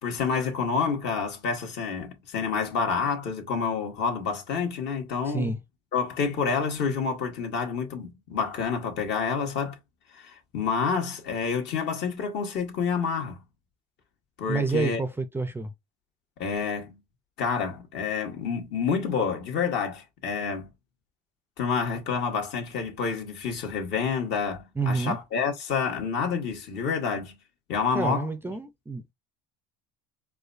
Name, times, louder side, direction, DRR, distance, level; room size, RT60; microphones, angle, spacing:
voice 1, 0.0-5.5 5.9-9.8 10.1-13.4 14.4-15.0 16.4-16.9 17.4-20.7 21.6-27.3 27.7-28.3, left 5 dB, 55° left, 1.4 m, -28 dB
voice 2, 5.3-5.6 14.5-15.7 24.8-25.2 27.9-29.1, right 4 dB, 10° right, 0.5 m, -28 dB
4.8 x 2.2 x 2.5 m
supercardioid pair, 100°, 21 cm